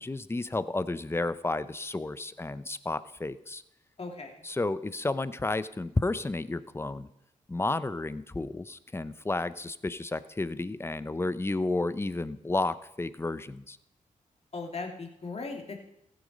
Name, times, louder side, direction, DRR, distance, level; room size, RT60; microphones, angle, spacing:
voice 1, 0.0-3.6 4.4-7.1 7.5-13.8, left 2 dB, 20° left, 14 dB, 0.7 m, -32 dB
voice 2, 4.0-4.4 14.5-15.9, left 3 dB, 45° left, 2 dB, 2.4 m, -38 dB
15.0 x 7.9 x 5.3 m, 0.80 s
cardioid pair, 60°, 14 cm